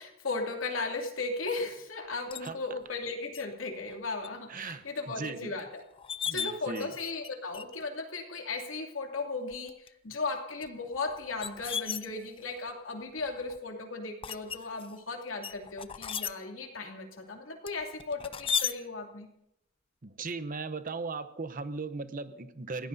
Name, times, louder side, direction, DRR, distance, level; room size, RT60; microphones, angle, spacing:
voice 1, 0.0-5.8 6.3-19.3, left 3 dB, 85° left, 2 dB, 2.7 m, -36 dB
sound 1, 2.3-2.5 3.3-3.5 3.9-4.3 4.7-4.8 5.6-5.7 5.9-7.3 7.5-7.9 8.6-8.7 9.5-9.9 10.6-12.6 13.2-13.6 14.2-14.9 15.4-16.3 17.7-18.7, left 8 dB, 30° left, 0.5 m, -35 dB
voice 2, 4.5-5.5 6.3-6.9 20.0-22.9, right 4 dB, 45° right, 11 dB, 0.8 m, -38 dB
30.0 x 17.5 x 2.7 m, 0.82 s
head